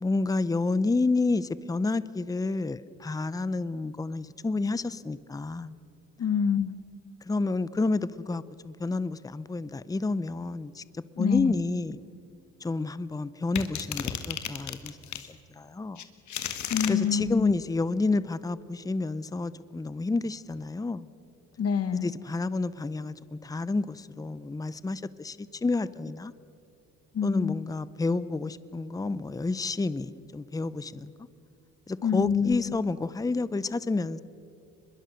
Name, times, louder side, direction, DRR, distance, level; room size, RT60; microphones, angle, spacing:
voice 1, 0.0-5.8 7.3-10.8 11.2-12.0 12.6-15.0 15.3-16.0 16.9-21.1 22.0-23.1 23.4-26.3 27.2-31.1 31.9-34.2, left 3 dB, 10° left, 17 dB, 0.6 m, -29 dB
voice 2, 6.2-6.8 11.2-11.5 16.7-17.5 21.6-22.1 27.1-27.6 32.0-32.8, left 7 dB, 50° left, 13 dB, 1.3 m, -26 dB
sound 1, 13.6-15.3 16.0-16.9, left 9 dB, 70° left, 1.7 m, -33 dB
23.5 x 22.0 x 6.4 m, 2.7 s
cardioid pair, 90°, 30 cm